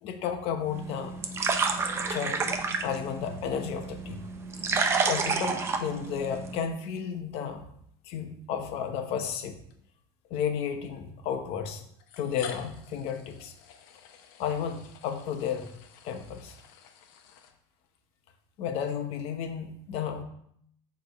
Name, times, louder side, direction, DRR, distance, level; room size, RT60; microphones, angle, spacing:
voice 1, 0.0-1.2 2.1-4.2 5.0-7.7 8.0-9.6 10.3-11.8 12.2-13.5 14.4-15.7 16.0-16.5 18.6-20.2, left 7 dB, 55° left, 6 dB, 0.9 m, -33 dB
sound 1, 0.7-6.6, right 4 dB, 20° right, 0.6 m, -30 dB
sound 2, 8.5-8.7 9.7-9.8 11.0-11.1 12.0-18.0, left 8 dB, 90° left, 0.8 m, -48 dB
6.9 x 3.5 x 5.2 m, 0.70 s
cardioid pair, 160°, 12 cm